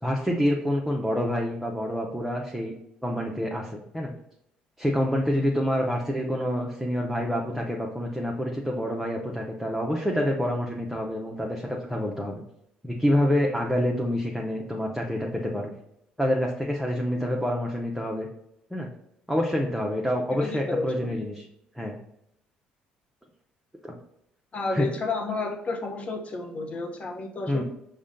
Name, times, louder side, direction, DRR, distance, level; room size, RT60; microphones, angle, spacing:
voice 1, 0.0-2.7 3.0-4.1 4.8-12.4 12.8-15.7 16.2-18.3 18.7-18.9 19.3-21.4 21.8-22.0 23.8-23.9 24.7-24.9 27.5-27.6, equal, ahead, -1 dB, 0.7 m, -27 dB
voice 2, 20.4-21.2 24.5-27.6, left 3 dB, 40° left, 3 dB, 0.9 m, -31 dB
5.0 x 2.2 x 3.7 m, 0.78 s
supercardioid pair, 70°, 3 cm